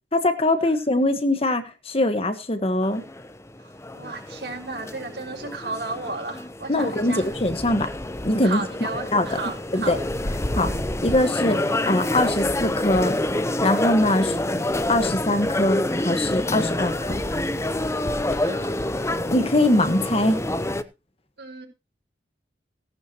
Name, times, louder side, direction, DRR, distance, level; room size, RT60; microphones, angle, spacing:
voice 1, 0.1-3.0 6.7-7.9 8.2-9.4 9.7-10.0 10.6-10.7 11.0-13.2 13.6-14.3 14.9-17.2 19.3-20.4, left 1 dB, 35° left, 1.4 m, -22 dB
sound 1, 2.8-20.8, left 1 dB, 15° left, 0.7 m, -27 dB
voice 2, 3.6-7.3 8.4-10.0 10.7-10.9 18.4-19.2 21.4-21.7, right 3 dB, 65° right, 5.4 m, -34 dB
18.0 x 11.0 x 3.0 m
head